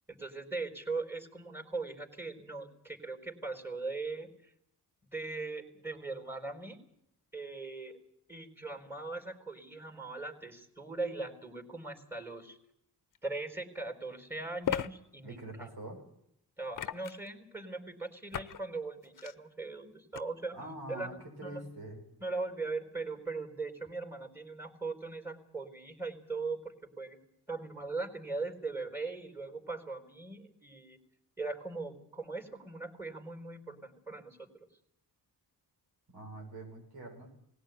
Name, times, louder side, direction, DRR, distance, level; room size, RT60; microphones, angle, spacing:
voice 1, 0.1-4.5 5.1-6.8 7.3-8.0 8.3-12.6 13.2-15.7 16.6-20.6 20.9-21.6 22.2-27.2 27.5-31.0 31.4-34.5, right 3 dB, 5° right, 6 dB, 4.2 m, -40 dB
sound 1, 13.1-13.2 14.6-14.9 16.7-17.3 18.3-18.6 19.0-19.3 20.1-20.2, left 9 dB, 55° left, 0.8 m, -35 dB
voice 2, 15.2-16.0 20.5-22.0 36.1-37.3, right 1 dB, 85° right, 1 dB, 7.4 m, -44 dB
19.5 x 16.5 x 9.4 m, 0.73 s
cardioid pair, 90°, 38 cm